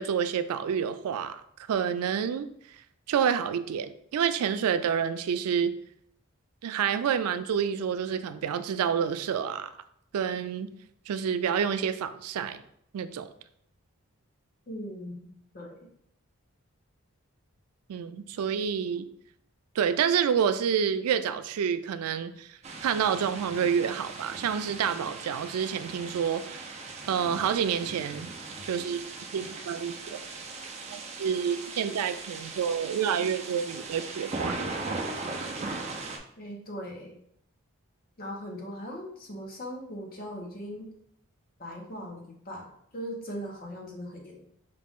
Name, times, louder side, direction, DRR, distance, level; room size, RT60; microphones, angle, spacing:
voice 1, 0.0-2.5 3.1-5.8 6.6-9.7 10.1-10.7 11.1-12.6 12.9-13.3 17.9-19.1 19.8-26.7 27.1-28.3 28.6-29.0 29.3-30.2 30.9-34.6, right 7 dB, 85° right, 12 dB, 0.3 m, -28 dB
voice 2, 14.7-15.3 15.5-15.9 36.4-37.2 38.2-40.9 41.6-42.7 42.9-44.4, equal, 40° left, 0 dB, 0.9 m, -39 dB
sound 1, 22.6-36.2, right 3 dB, 30° right, 0.5 m, -38 dB
5.0 x 2.4 x 3.5 m, 0.70 s
head